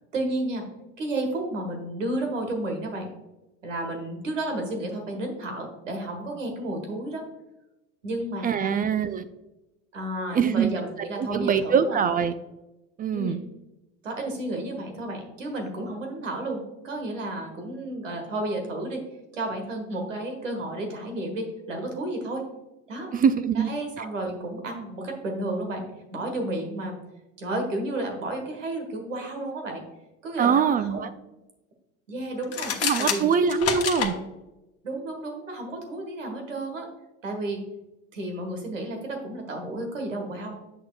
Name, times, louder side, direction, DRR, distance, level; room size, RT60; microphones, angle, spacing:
voice 1, 0.1-0.6 1.0-3.1 3.6-7.2 8.0-8.7 9.9-12.0 13.1-13.4 14.0-19.0 19.3-22.5 22.9-23.1 23.5-25.8 26.1-27.0 27.4-29.8 30.2-31.0 32.1-33.3 34.8-36.9 37.2-37.6 38.1-40.6, right 1 dB, 90° right, 3 dB, 1.5 m, -32 dB
voice 2, 8.4-9.3 10.3-10.7 11.2-12.3 13.0-13.4 23.1-23.7 30.4-31.1 32.8-34.1, right 7 dB, 25° right, 12 dB, 0.4 m, -23 dB
sound 1, 32.4-34.1, left 7 dB, 40° left, 1.1 m, -27 dB
7.9 x 6.3 x 2.4 m, 0.96 s
hypercardioid pair, 75°, 37 cm